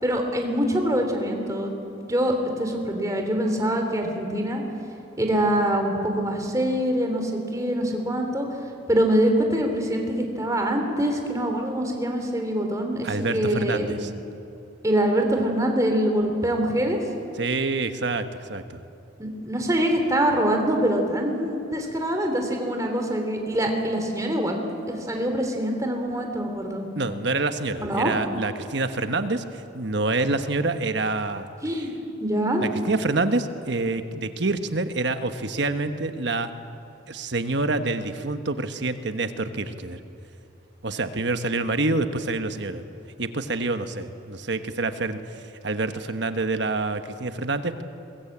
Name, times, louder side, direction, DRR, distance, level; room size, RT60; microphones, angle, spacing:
voice 1, 0.0-1.7 2.0-4.6 5.2-8.5 8.9-13.9 14.8-17.0 19.2-24.6 24.9-26.9 27.8-28.1 31.6-31.9 32.2-32.6, right 1 dB, 15° right, 3 dB, 3.2 m, -24 dB
voice 2, 13.0-14.1 17.4-18.8 27.0-31.5 32.6-36.5 37.1-40.0 40.8-42.8 43.2-47.8, right 3 dB, 60° right, 9 dB, 1.2 m, -27 dB
23.0 x 21.0 x 8.7 m, 2.8 s
head